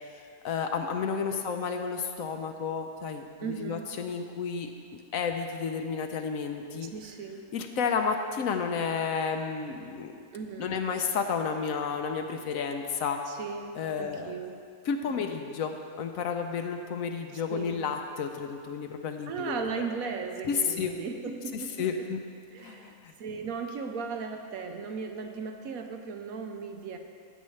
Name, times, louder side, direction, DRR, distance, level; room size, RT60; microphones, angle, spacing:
voice 1, 0.4-4.7 5.1-6.9 7.5-10.1 10.6-13.2 13.7-14.3 14.9-19.9 20.5-20.9 21.8-22.2 22.6-23.1, left 6 dB, 70° left, 5 dB, 1.0 m, -31 dB
voice 2, 3.4-3.9 6.8-7.5 10.3-10.7 13.3-14.6 15.2-15.3 17.5-17.8 19.3-21.9 22.5-27.0, right 5 dB, 70° right, 5 dB, 1.1 m, -37 dB
14.5 x 8.2 x 3.2 m, 2.2 s
omnidirectional pair, 1.7 m